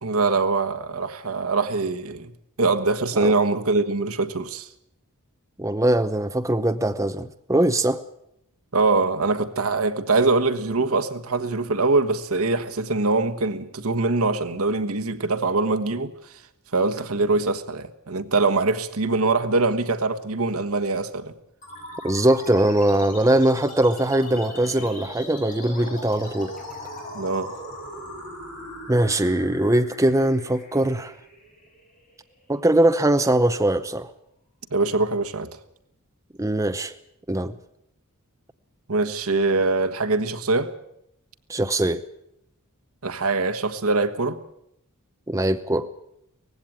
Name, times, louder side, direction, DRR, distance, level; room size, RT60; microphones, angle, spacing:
voice 1, 0.0-2.3 2.6-4.7 8.7-16.1 16.7-21.3 27.1-27.5 34.7-35.5 38.9-40.7 43.0-44.4, right 3 dB, 75° right, 1.4 m, -23 dB
voice 2, 5.6-8.0 22.0-26.5 28.9-31.1 32.5-34.1 36.4-36.9 37.3-37.5 41.5-42.0 45.3-45.9, right 1 dB, 15° right, 0.7 m, -21 dB
sound 1, 21.6-32.6, left 1 dB, 40° left, 7.1 m, -39 dB
19.0 x 16.0 x 8.9 m
head